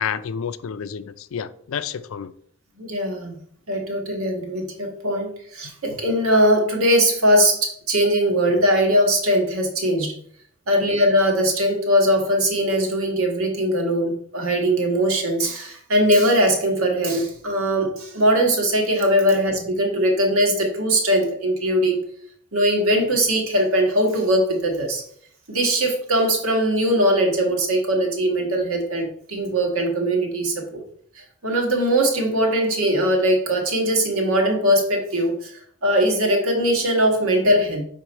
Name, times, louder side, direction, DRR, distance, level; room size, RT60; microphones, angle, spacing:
voice 1, 0.0-2.3, left 7 dB, 70° left, 14 dB, 0.4 m, -29 dB
voice 2, 2.8-3.3 3.7-10.1 10.7-22.0 22.5-25.0 25.5-30.8 31.1-37.8, equal, 85° right, 2 dB, 1.5 m, -20 dB
6.3 x 3.8 x 4.4 m, 0.63 s
head